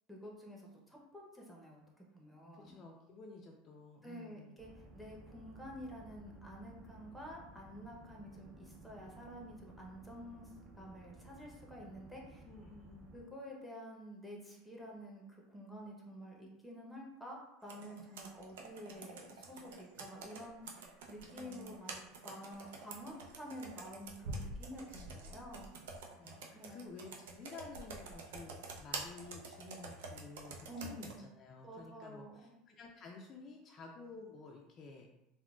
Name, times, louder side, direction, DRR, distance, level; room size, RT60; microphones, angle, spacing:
voice 1, 0.1-1.8 2.1-2.8 4.0-10.5 10.8-12.4 13.1-20.8 21.1-25.8 26.5-26.8 30.7-31.3 31.6-32.5, equal, ahead, -2 dB, 0.7 m, -50 dB
voice 2, 2.5-4.5 12.4-13.1 21.3-21.8 26.1-35.1, left 3 dB, 35° left, 1 dB, 0.3 m, -52 dB
sound 1, 4.6-13.2, right 2 dB, 70° right, 0.9 m, -56 dB
Computer keyboard, 17.7-31.2, right 3 dB, 90° right, 0.4 m, -48 dB
3.6 x 2.1 x 2.3 m, 0.89 s
supercardioid pair, 125°, 0 cm